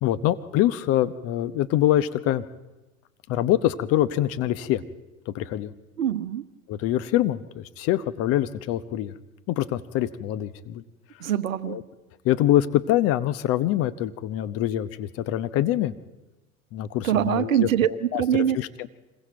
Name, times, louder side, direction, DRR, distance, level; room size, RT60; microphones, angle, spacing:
voice 1, 0.0-2.4 3.3-4.8 5.3-5.7 6.7-9.1 9.5-10.8 11.7-11.8 12.2-15.9 16.7-18.2 18.5-18.9, left 13 dB, 30° left, 12 dB, 0.9 m, -24 dB
voice 2, 6.0-6.5 11.2-11.8 17.0-18.6, right 10 dB, 65° right, 13 dB, 1.1 m, -24 dB
26.0 x 21.5 x 4.6 m, 1.1 s
figure-of-eight pair, 90°, 43 cm